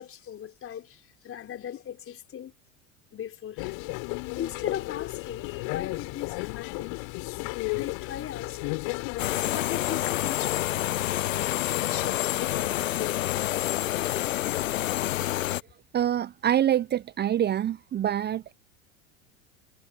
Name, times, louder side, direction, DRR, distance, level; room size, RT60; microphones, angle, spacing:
voice 1, 0.0-2.5 3.1-3.8 4.3-6.9 7.7-8.8 9.5-10.7 11.3-13.2 14.3-14.4, left 10 dB, 30° left, 4.5 m, -38 dB
sound 1, 3.6-9.4, left 32 dB, 55° left, 7.0 m, -33 dB
sound 2, 9.2-15.6, left 14 dB, 70° left, 0.6 m, -28 dB
voice 2, 15.9-18.5, right 10 dB, 25° right, 0.9 m, -25 dB
figure-of-eight pair, 80°, 40 cm